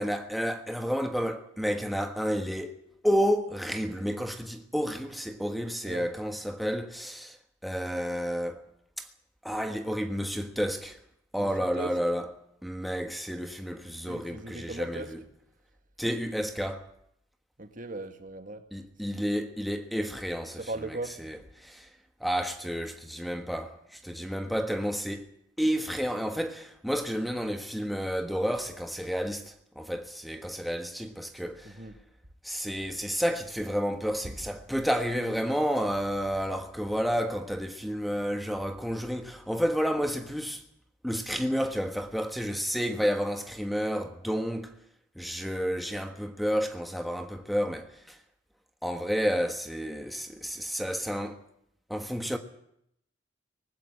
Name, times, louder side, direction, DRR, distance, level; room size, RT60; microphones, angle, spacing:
voice 1, 0.0-2.8 3.0-7.4 7.6-8.6 9.0-9.1 9.4-11.0 11.3-12.3 12.6-15.2 16.0-16.9 18.7-21.9 22.2-31.7 32.4-40.6 41.0-44.7 45.2-48.2 48.8-51.4 51.9-52.4, equal, ahead, 1.4 m, -31 dB
voice 2, 11.4-12.0 14.1-15.1 17.6-18.6 20.6-21.2 31.6-31.9 34.2-34.4, right 2 dB, 45° right, 2.0 m, -38 dB
20.0 x 16.0 x 9.8 m
head